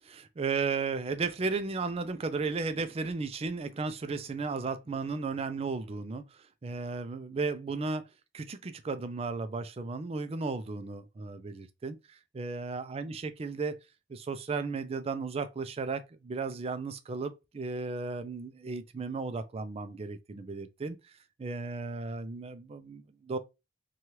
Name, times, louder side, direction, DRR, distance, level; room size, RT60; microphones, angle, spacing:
voice 1, 0.0-8.0 8.3-13.8 14.1-21.0 21.4-23.4, right 4 dB, 30° right, 0.4 m, -35 dB
2.8 x 2.3 x 3.0 m
head